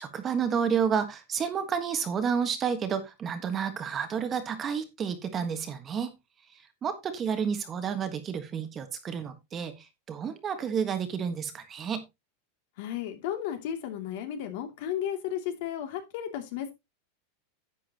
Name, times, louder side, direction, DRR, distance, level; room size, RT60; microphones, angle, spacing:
voice 1, 0.0-6.2 6.5-12.0, right 7 dB, 20° right, 1.4 m, -30 dB
voice 2, 12.8-16.7, left 10 dB, 55° left, 2.5 m, -34 dB
10.5 x 8.4 x 2.9 m
supercardioid pair, 160°, 0 cm